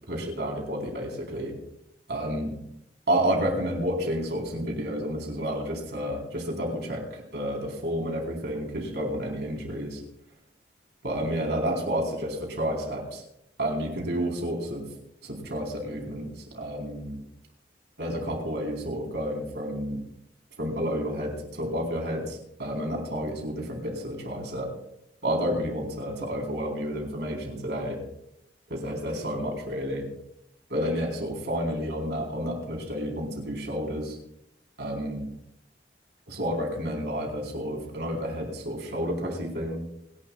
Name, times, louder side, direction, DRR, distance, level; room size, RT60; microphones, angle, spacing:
voice 1, 0.1-1.6 2.1-2.5 3.1-10.0 11.0-13.2 13.6-14.9 15.2-16.3 16.5-17.2 18.0-20.0 20.6-24.7 25.2-28.0 28.7-30.1 30.7-34.2 34.8-35.3 36.3-39.8, equal, 65° right, 0 dB, 4.1 m, -30 dB
29.0 x 11.5 x 2.4 m, 0.77 s
head